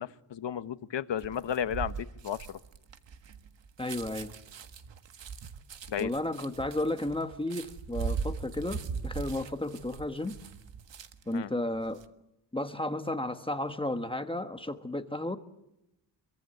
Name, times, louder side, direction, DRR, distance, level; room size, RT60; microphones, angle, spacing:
voice 1, 0.0-2.6 5.9-6.1 11.3-11.5, left 9 dB, 70° left, 1.2 m, -33 dB
sound 1, 1.2-11.4 11.7-12.1, right 6 dB, 75° right, 1.7 m, -40 dB
voice 2, 3.8-4.3 6.0-10.4 11.3-12.0 12.5-15.4, left 1 dB, 10° left, 1.3 m, -33 dB
26.0 x 23.5 x 8.0 m
wide cardioid pair, 150°, 44 cm